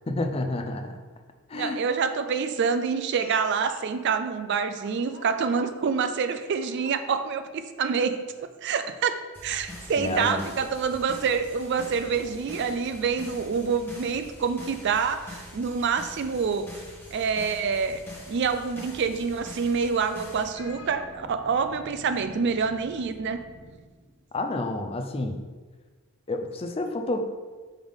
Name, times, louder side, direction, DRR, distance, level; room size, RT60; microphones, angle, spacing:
voice 1, 0.1-1.0 1.5-1.8 10.0-10.4 24.3-25.4 26.3-27.2, left 2 dB, 25° left, 5 dB, 0.4 m, -29 dB
voice 2, 1.5-8.2 8.6-16.7 17.1-18.0 18.3-23.4, right 5 dB, 50° right, 10 dB, 0.4 m, -27 dB
Speech, 3.2-3.9 4.8-5.7 6.7-7.0 8.3-8.5 8.9-9.0 10.7-10.8 11.6-12.5 13.8-13.9 14.2-14.3 16.2-16.3 16.9-17.2 18.3-21.6, left 2 dB, 60° left, 0.8 m, -50 dB
sound 1, 9.3-20.5, left 1 dB, 10° left, 1.1 m, -44 dB
sound 2, 20.5-24.3, equal, 35° right, 1.0 m, -48 dB
5.3 x 3.5 x 5.2 m, 1.4 s
head